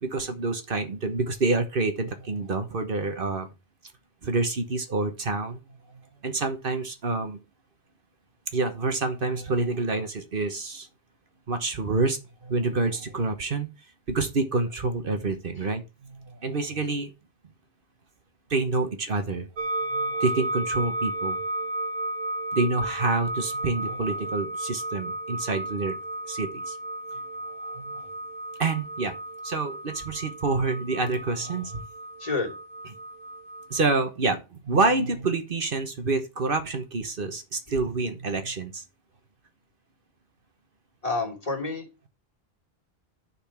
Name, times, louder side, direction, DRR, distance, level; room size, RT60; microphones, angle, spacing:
voice 1, 0.0-3.5 4.2-5.6 6.2-7.4 8.5-10.9 11.5-13.7 14.1-17.1 18.5-19.5 19.9-21.4 22.5-26.0 26.3-26.8 27.7-28.0 28.6-29.1 29.4-31.8 33.7-38.8, right 3 dB, 60° right, 7 dB, 1.3 m, -27 dB
voice 2, 15.2-15.6 32.2-32.5 41.0-41.9, left 3 dB, 35° left, 0 dB, 2.8 m, -30 dB
sound 1, 19.6-33.8, right 1 dB, 75° right, 1.4 m, -33 dB
10.5 x 4.5 x 5.8 m, 0.29 s
omnidirectional pair, 1.0 m